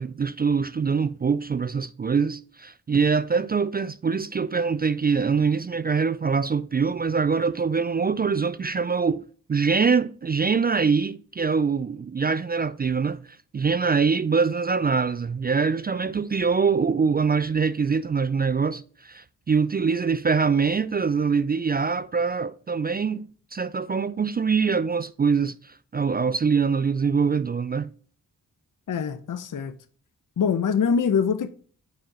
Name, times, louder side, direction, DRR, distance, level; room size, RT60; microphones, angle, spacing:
voice 1, 0.0-13.2 13.5-27.9, right 5 dB, 25° right, 0.3 m, -24 dB
voice 2, 28.9-29.7 30.4-31.5, left 6 dB, 55° left, 0.8 m, -24 dB
6.1 x 4.6 x 4.1 m
cardioid pair, 50°, 38 cm